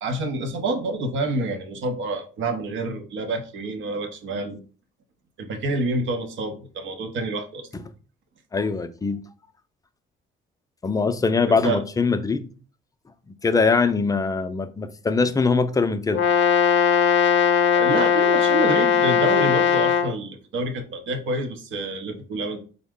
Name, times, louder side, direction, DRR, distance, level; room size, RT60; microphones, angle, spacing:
voice 1, 0.0-4.6 5.4-7.7 11.5-11.8 17.7-22.6, right 2 dB, 70° right, 0.7 m, -28 dB
voice 2, 8.5-9.3 10.8-12.5 13.3-16.2, left 4 dB, 20° left, 0.3 m, -22 dB
Brass instrument, 16.1-20.1, left 7 dB, 70° left, 0.6 m, -19 dB
3.6 x 2.0 x 3.6 m
cardioid pair, 90°, 20 cm